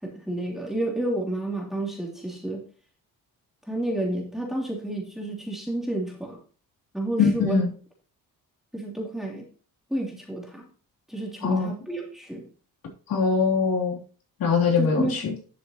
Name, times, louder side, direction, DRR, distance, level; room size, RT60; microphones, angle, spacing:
voice 1, 0.0-2.6 3.7-6.4 6.9-7.6 8.7-9.4 9.9-10.7 11.1-12.4 14.8-15.2, right 1 dB, ahead, -1 dB, 3.0 m, -30 dB
voice 2, 7.2-7.7 11.4-11.7 13.1-14.0 14.4-15.3, left 5 dB, 70° left, -1 dB, 3.3 m, -22 dB
11.5 x 7.0 x 3.0 m, 0.39 s
cardioid pair, 135°, 36 cm